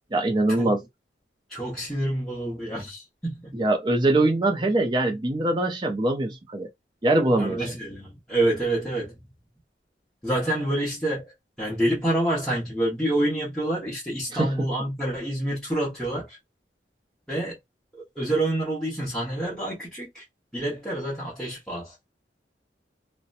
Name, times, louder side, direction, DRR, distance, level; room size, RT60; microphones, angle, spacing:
voice 1, 0.1-0.8 3.5-6.7 7.0-7.6 14.3-14.7, right 2 dB, 25° right, 0.5 m, -23 dB
voice 2, 1.5-3.5 7.4-9.3 10.2-11.3 11.6-16.4 17.3-17.6 17.9-20.2 20.5-22.1, right 1 dB, 5° left, 0.9 m, -28 dB
2.7 x 2.1 x 2.4 m
head